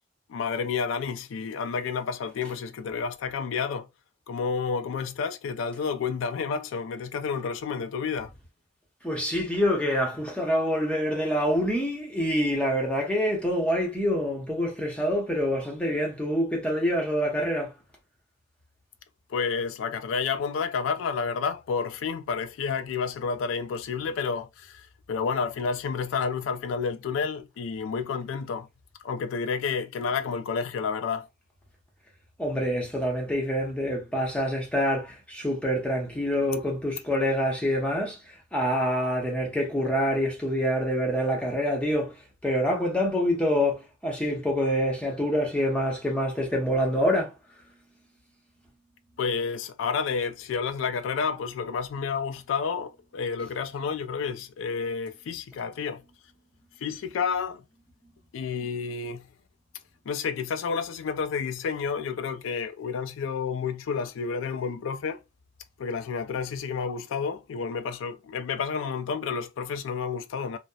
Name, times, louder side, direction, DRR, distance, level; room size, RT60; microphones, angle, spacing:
voice 1, 0.3-3.9 4.3-8.3 19.3-28.7 29.0-31.3 49.2-56.0 56.8-57.6 58.3-59.3 60.1-65.2 65.8-70.6, left 5 dB, 75° left, 0.3 m, -30 dB
voice 2, 9.0-17.7 32.4-42.1 42.4-47.3, equal, 5° left, 0.7 m, -26 dB
2.7 x 2.0 x 2.2 m
head